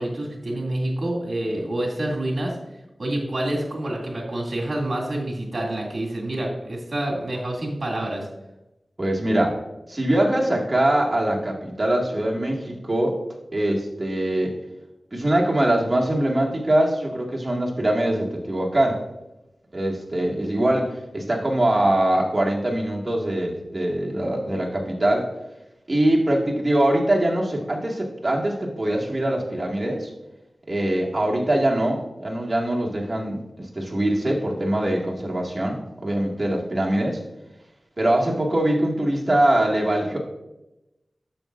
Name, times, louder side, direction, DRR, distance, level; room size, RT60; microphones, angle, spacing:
voice 1, 0.0-2.6 3.0-8.3, right 1 dB, 55° right, -2 dB, 2.4 m, -27 dB
voice 2, 9.0-9.6 9.9-13.2 13.5-14.5 15.1-19.0 19.7-25.3 25.9-30.1 30.7-37.2 38.0-40.2, right 1 dB, 35° right, -2 dB, 2.0 m, -23 dB
10.5 x 7.3 x 2.5 m, 0.95 s
cardioid pair, 45°, 0 cm